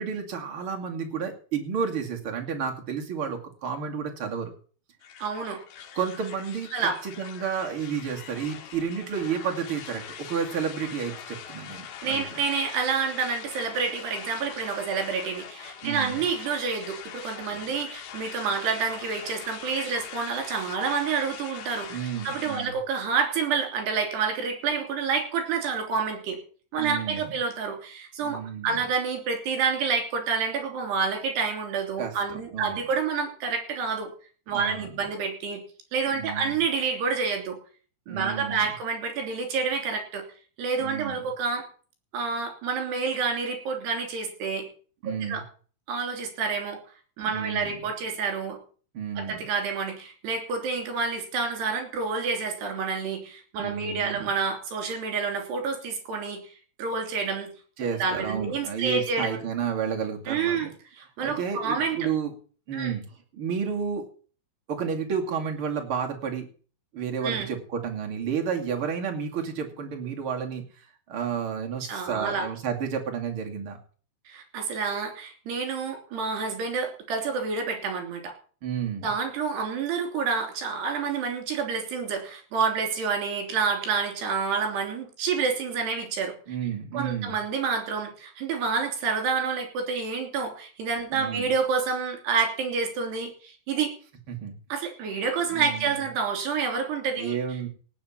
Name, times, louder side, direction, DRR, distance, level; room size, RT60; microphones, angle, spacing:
voice 1, 0.0-4.5 5.9-12.2 15.8-16.2 21.9-22.8 26.8-27.3 28.2-28.8 32.0-32.8 34.5-34.9 36.1-36.6 38.1-38.6 40.8-41.3 45.0-45.4 47.2-47.7 48.9-49.5 53.6-54.3 57.8-60.7 61.2-62.3 62.7-63.0 63.3-64.1 64.7-66.5 66.9-73.8 78.6-79.1 86.5-87.3 91.1-91.5 94.3-94.6 95.5-95.9 97.2-97.7, right 7 dB, 40° right, 2 dB, 2.2 m, -31 dB
sound 1, 5.0-22.7, left 8 dB, 65° left, 2.7 m, -42 dB
voice 2, 5.2-5.6 6.7-7.0 12.0-26.4 26.7-34.1 34.5-35.6 35.9-37.6 38.1-40.2 40.6-41.6 42.1-44.7 45.0-45.4 45.9-46.8 47.2-48.6 49.2-56.5 56.8-57.5 58.0-59.4 60.3-60.7 61.0-62.1 62.7-62.9 67.2-67.5 71.9-72.5 74.3-78.3 79.0-86.3 86.9-93.9 94.7-97.4, right 5 dB, 55° right, 4 dB, 5.1 m, -28 dB
18.0 x 7.0 x 7.3 m, 0.41 s
omnidirectional pair, 5.9 m